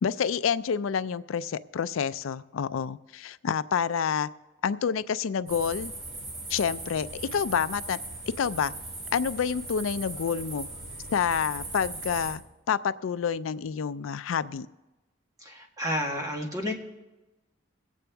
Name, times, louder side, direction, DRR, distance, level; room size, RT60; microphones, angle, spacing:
voice 1, 0.0-4.3 4.6-5.9 6.5-8.0 8.4-8.7 9.1-10.7 11.1-12.4 12.7-14.7, left 7 dB, 85° left, 14 dB, 0.4 m, -28 dB
sound 1, 5.5-12.4, right 2 dB, 85° right, 2.6 m, -39 dB
voice 2, 15.4-16.8, equal, 20° right, 0 dB, 1.4 m, -31 dB
22.5 x 8.5 x 3.4 m, 1.1 s
head